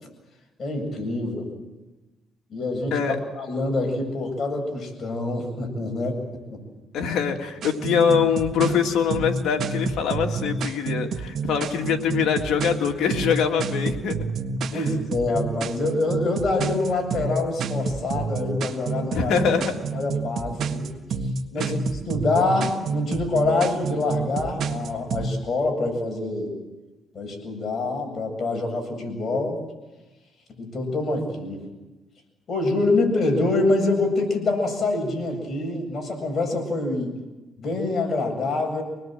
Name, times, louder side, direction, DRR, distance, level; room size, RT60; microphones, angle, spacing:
voice 1, 0.6-1.5 2.5-6.2 6.5-6.6 14.7-19.4 19.9-20.9 21.5-26.5 27.1-29.6 30.6-31.6 32.5-37.2 37.6-38.8, left 2 dB, 45° left, 3 dB, 7.8 m, -25 dB
voice 2, 6.9-14.2 14.7-14.9 19.1-19.7 21.6-21.7, left 7 dB, 80° left, 3 dB, 2.5 m, -23 dB
sound 1, 7.6-25.3, right 5 dB, 65° right, 1.7 m, -29 dB
25.5 x 20.0 x 7.8 m, 1.1 s
cardioid pair, 90°, 0 cm